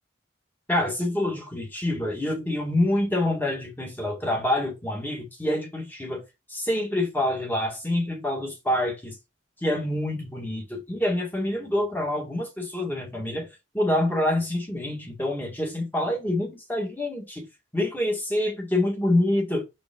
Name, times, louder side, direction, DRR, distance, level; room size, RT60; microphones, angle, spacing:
voice 1, 0.7-6.2 6.5-9.2 9.6-17.5 17.7-19.6, left 1 dB, 10° left, 1.8 m, -26 dB
5.9 x 5.1 x 3.7 m
head